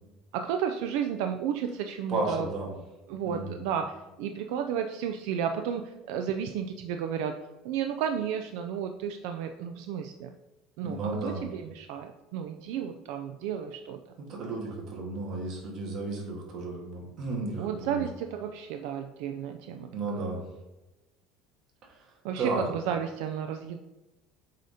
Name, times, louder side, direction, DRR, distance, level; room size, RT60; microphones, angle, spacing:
voice 1, 0.3-2.5 3.1-7.4 7.6-10.3 10.8-14.0 17.6-20.3 22.2-23.8, right 8 dB, 70° right, 6 dB, 0.4 m, -32 dB
voice 2, 2.1-2.7 3.2-3.5 10.8-11.4 14.2-18.0 19.9-20.4 22.4-22.6, right 3 dB, 35° right, -1 dB, 1.5 m, -33 dB
7.6 x 2.8 x 4.9 m, 1.0 s
cardioid pair, 170°, 0 cm